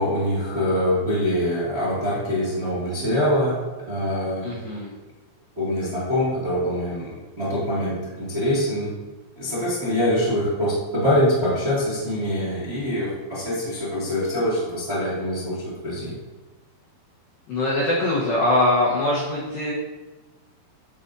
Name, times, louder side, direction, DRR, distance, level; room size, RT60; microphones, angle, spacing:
voice 1, 0.0-3.6 3.9-4.5 5.5-8.9 9.3-15.6 15.8-16.1, equal, 30° right, -9 dB, 1.0 m, -24 dB
voice 2, 4.4-4.9 17.5-19.7, left 1 dB, 75° left, -7 dB, 2.2 m, -22 dB
11.0 x 4.9 x 2.7 m, 1.2 s
omnidirectional pair, 5.6 m